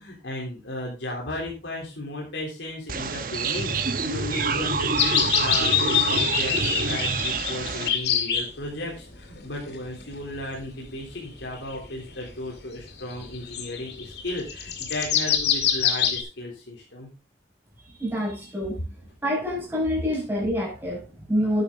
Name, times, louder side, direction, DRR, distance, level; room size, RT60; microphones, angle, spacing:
voice 1, 0.0-17.1, left 1 dB, 85° left, -1 dB, 3.4 m, -35 dB
sound 1, 2.9-7.9, right 4 dB, 50° right, 1.1 m, -27 dB
sound 2, 5.0-8.5 9.1-10.4 10.9-11.9 12.3-12.4 13.1-16.2, left 8 dB, 65° left, 2.2 m, -25 dB
voice 2, 17.8-18.8 19.2-21.6, equal, 10° right, -3 dB, 5.9 m, -27 dB
11.0 x 9.0 x 3.8 m, 0.30 s
head